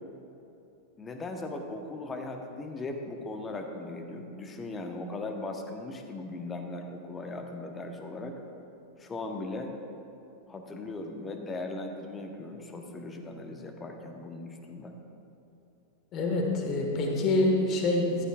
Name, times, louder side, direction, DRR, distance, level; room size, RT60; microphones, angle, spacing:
voice 1, 1.0-8.4 9.0-9.7 10.5-15.0, left 2 dB, 20° left, 4 dB, 1.0 m, -38 dB
voice 2, 16.1-18.2, left 2 dB, 35° left, 1 dB, 1.5 m, -26 dB
14.0 x 12.5 x 2.4 m, 2.8 s
figure-of-eight pair, 90°, 0 cm